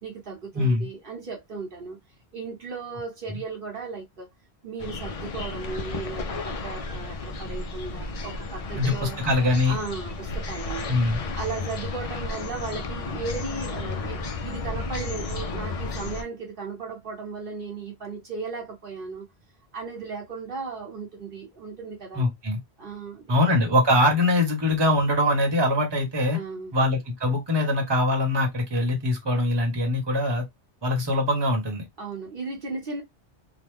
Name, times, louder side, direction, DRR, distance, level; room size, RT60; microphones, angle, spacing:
voice 1, 0.0-2.0 2.3-4.3 4.6-9.2 9.6-10.9 11.3-19.3 19.7-22.2 22.8-23.3 26.3-26.7 32.0-33.0, right 4 dB, 60° right, 1.1 m, -36 dB
voice 2, 0.5-0.9 8.8-9.8 10.9-11.2 22.1-22.6 23.3-26.4 26.7-30.4 30.8-31.8, left 1 dB, 25° right, 1.0 m, -23 dB
sound 1, 4.8-16.2, left 3 dB, 45° left, 0.5 m, -33 dB
3.0 x 2.2 x 3.4 m
omnidirectional pair, 1.1 m